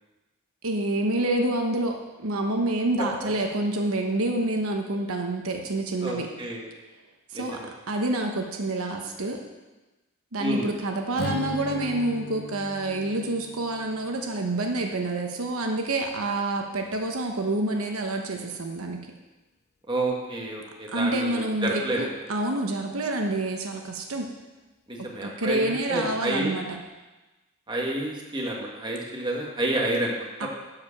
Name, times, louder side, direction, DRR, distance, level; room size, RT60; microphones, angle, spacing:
voice 1, 0.6-6.3 7.3-7.6 7.9-9.4 10.3-19.0 20.9-24.3 25.2-26.8 30.4-30.5, right 2 dB, 75° right, 3 dB, 1.0 m, -28 dB
voice 2, 6.0-6.7 7.3-7.7 10.4-10.7 19.9-22.0 24.9-26.5 27.7-30.5, right 1 dB, 20° right, -2 dB, 1.7 m, -29 dB
Strum, 11.1-15.6, left 3 dB, 45° left, 0.6 m, -38 dB
11.5 x 5.0 x 7.2 m, 1.2 s
head